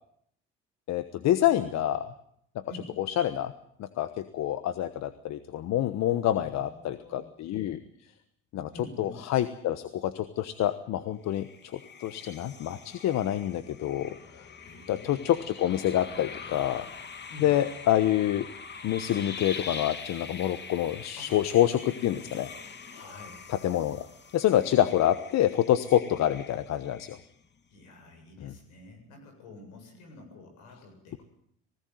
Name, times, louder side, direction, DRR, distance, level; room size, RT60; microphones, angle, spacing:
voice 1, 0.9-2.1 2.7-3.5 3.8-7.8 8.5-11.5 12.0-14.1 14.9-16.8 17.4-18.5 18.8-22.5 23.5-24.1 24.3-27.2 28.4-28.5, left 12 dB, 65° left, 12 dB, 1.3 m, -27 dB
voice 2, 6.3-7.3 8.7-9.2 14.6-15.4 17.3-17.5 21.2-21.3 22.9-23.5 27.7-31.2, left 2 dB, 80° left, 4 dB, 7.7 m, -48 dB
sound 1, 11.3-27.6, left 5 dB, 35° left, 2.2 m, -44 dB
20.0 x 17.0 x 9.4 m, 0.69 s
supercardioid pair, 75°, 30 cm